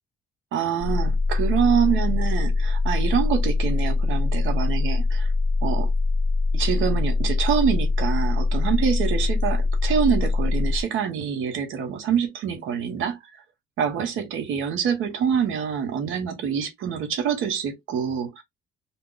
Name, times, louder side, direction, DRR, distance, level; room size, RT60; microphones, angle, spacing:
voice 1, 0.5-5.3 5.6-5.9 6.5-13.4 13.8-18.4, right 7 dB, 85° right, 1.0 m, -26 dB
sound 1, 0.8-10.8, left 3 dB, 35° right, 1.0 m, -23 dB
2.4 x 2.3 x 3.7 m
cardioid pair, 90°, 20 cm